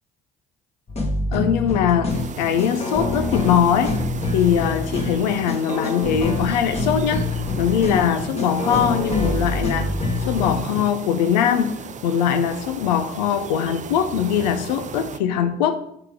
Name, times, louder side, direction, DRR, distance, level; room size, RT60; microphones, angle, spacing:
sound 1, 0.9-10.6, left 2 dB, 30° left, 1.5 m, -26 dB
voice 1, 1.3-4.0 4.3-7.3 7.6-9.9 10.2-11.7 12.0-15.8, left 8 dB, 85° left, 0.6 m, -21 dB
sound 2, 2.1-15.2, right 7 dB, 35° right, 0.5 m, -35 dB
5.8 x 5.0 x 4.8 m
hypercardioid pair, 60°, 21 cm